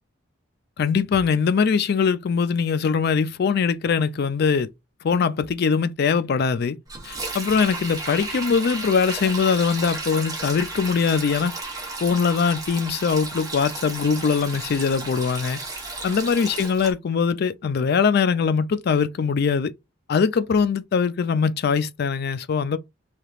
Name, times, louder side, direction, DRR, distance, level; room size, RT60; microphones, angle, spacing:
voice 1, 0.8-4.7 5.0-6.8 7.0-11.5 12.0-15.6 16.0-19.7 20.1-22.8, left 5 dB, 55° left, 0.4 m, -22 dB
Sink (filling or washing), 6.9-16.9, right 3 dB, 20° right, 1.0 m, -33 dB
3.3 x 2.9 x 2.4 m
head